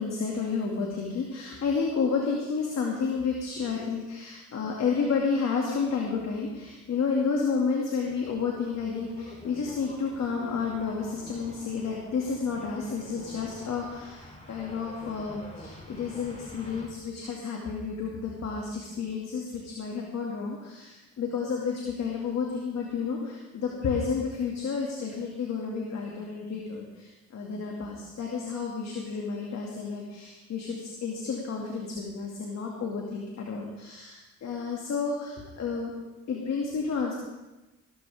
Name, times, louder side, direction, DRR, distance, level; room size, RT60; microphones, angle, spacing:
voice 1, 0.0-35.9 36.3-37.1, left 5 dB, 60° left, -1 dB, 2.3 m, -31 dB
sound 1, 8.0-16.9, left 1 dB, 25° left, 3.6 m, -47 dB
18.0 x 13.0 x 3.6 m, 1.1 s
cardioid pair, 90°, 30 cm